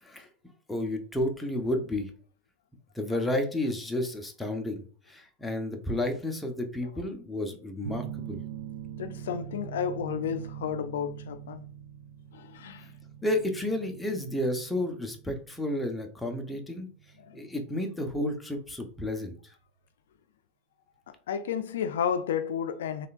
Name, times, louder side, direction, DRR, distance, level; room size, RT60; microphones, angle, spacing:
voice 1, 0.7-2.1 2.9-8.4 12.8-12.9 13.2-16.9 17.3-19.5, left 1 dB, 5° left, 0.8 m, -31 dB
sound 1, 7.8-19.0, right 9 dB, 75° right, 0.4 m, -43 dB
voice 2, 9.0-11.6 12.3-12.9 17.2-17.4 21.1-23.1, left 8 dB, 90° left, 0.4 m, -32 dB
3.7 x 3.3 x 2.4 m
supercardioid pair, 120°, 0 cm